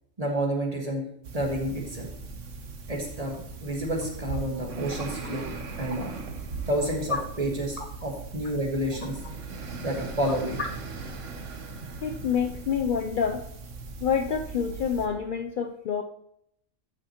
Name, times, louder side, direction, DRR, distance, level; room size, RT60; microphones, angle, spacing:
voice 1, 0.2-1.1 1.3-2.1 2.9-6.2 6.7-9.2 9.8-10.6, right 1 dB, 30° right, 0 dB, 1.6 m, -30 dB
sound 1, 1.2-15.1, right 4 dB, 65° right, 1.2 m, -39 dB
voice 2, 12.0-13.4 14.0-16.0, left 7 dB, 85° left, 5 dB, 0.4 m, -27 dB
13.0 x 6.3 x 2.9 m, 0.73 s
omnidirectional pair, 1.4 m